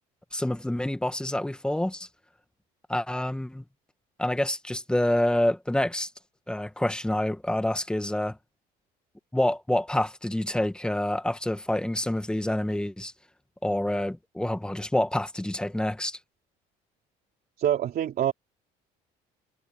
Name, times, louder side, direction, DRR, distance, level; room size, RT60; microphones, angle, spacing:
voice 1, 0.3-2.1 2.9-3.6 4.2-6.1 6.5-8.4 9.3-13.1 13.6-16.2, left 1 dB, 5° left, 1.8 m, -27 dB
voice 2, 17.6-18.3, right 10 dB, 55° right, 3.5 m, -25 dB
supercardioid pair, 90°, 19 cm